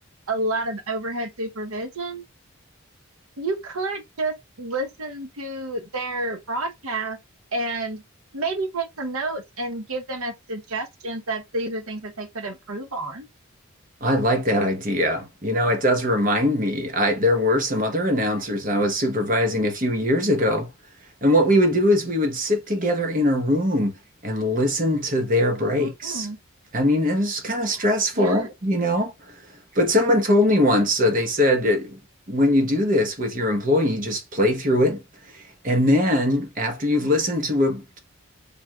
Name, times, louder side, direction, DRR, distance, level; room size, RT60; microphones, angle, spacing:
voice 1, 0.3-2.2 3.4-7.2 7.5-8.0 8.3-13.3 25.6-26.4 28.2-28.5, right 2 dB, 90° right, 1.0 m, -30 dB
voice 2, 14.0-20.7 21.2-23.9 24.2-26.3 26.7-29.1 29.7-32.0 32.3-35.0 35.3-38.0, left 1 dB, 40° right, 1.0 m, -21 dB
4.6 x 3.4 x 2.3 m
head